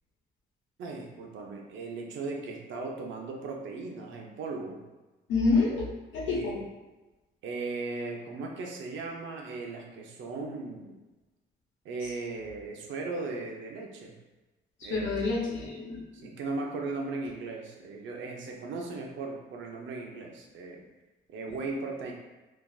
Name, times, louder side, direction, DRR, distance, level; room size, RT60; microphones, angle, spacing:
voice 1, 0.8-4.8 6.2-6.6 7.4-11.0 11.8-14.1 14.8-15.3 16.1-20.8 21.3-22.1, right 3 dB, 75° right, 0 dB, 0.6 m, -37 dB
voice 2, 5.3-5.9 6.1-6.5 14.8-16.3, left 3 dB, 75° left, -4 dB, 1.0 m, -28 dB
3.3 x 2.4 x 2.3 m, 1.1 s
cardioid pair, 90°, 20 cm